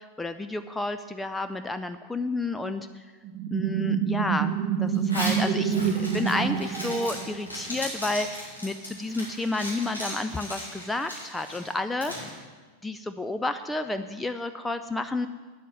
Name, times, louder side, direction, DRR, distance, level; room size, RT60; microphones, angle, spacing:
voice 1, 0.0-3.1 3.5-12.3 12.8-15.3, left 2 dB, 5° left, 8 dB, 0.5 m, -31 dB
sound 1, 3.2-7.7, right 7 dB, 30° right, 0.8 m, -27 dB
Zipper (clothing), 4.9-12.3, equal, 85° left, 3.9 m, -37 dB
9.5 x 8.4 x 9.1 m, 1.4 s
figure-of-eight pair, 90°, 0 cm